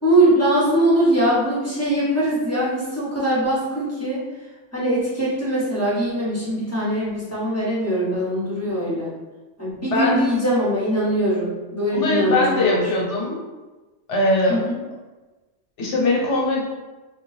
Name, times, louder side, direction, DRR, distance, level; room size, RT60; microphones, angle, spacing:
voice 1, 0.0-4.2 4.7-9.1 9.6-12.8 14.5-14.8, right 1 dB, 15° left, -8 dB, 0.7 m, -21 dB
voice 2, 9.9-10.2 11.9-13.4 14.1-14.6 15.8-16.6, left 2 dB, 75° left, -3 dB, 1.1 m, -21 dB
3.3 x 2.3 x 3.1 m, 1.2 s
omnidirectional pair, 1.3 m